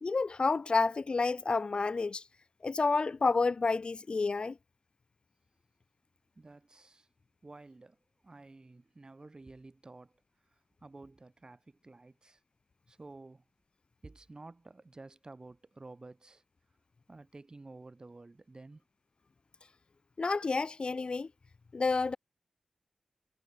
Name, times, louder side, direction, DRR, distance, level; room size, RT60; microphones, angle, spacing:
voice 1, 0.0-2.2 2.6-4.6 20.2-21.3 21.7-22.2, left 4 dB, 50° left, 0.4 m, -29 dB
voice 2, 6.4-7.1 7.4-8.0 8.2-12.4 12.9-13.4 14.0-16.4 17.1-18.8, right 2 dB, 40° right, 5.7 m, -52 dB
cardioid pair, 50°, 2 cm